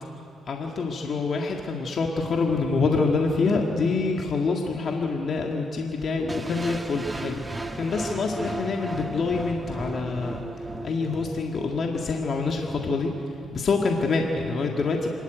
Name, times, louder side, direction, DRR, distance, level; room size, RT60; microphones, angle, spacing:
voice 1, 0.5-10.4 10.8-15.1, left 4 dB, 50° left, 1 dB, 1.8 m, -26 dB
sound 1, 6.3-12.3, right 2 dB, 15° right, 1.4 m, -35 dB
26.0 x 13.0 x 9.3 m, 2.7 s
cardioid pair, 90°, 0 cm